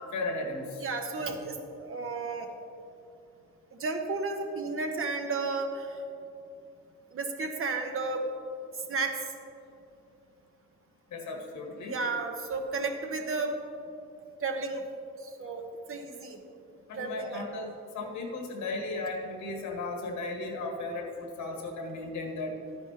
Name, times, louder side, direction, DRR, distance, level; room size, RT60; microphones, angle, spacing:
voice 1, 0.1-0.8 1.1-1.3 11.1-12.0 16.9-22.6, left 2 dB, 75° left, 1 dB, 1.6 m, -36 dB
voice 2, 0.8-2.5 3.8-5.9 7.1-8.2 8.9-9.2 11.9-13.6 14.4-14.8 15.2-16.4 17.0-17.4, right 3 dB, 45° right, 4 dB, 1.0 m, -33 dB
11.5 x 9.7 x 2.9 m, 2.8 s
cardioid pair, 90°, 30 cm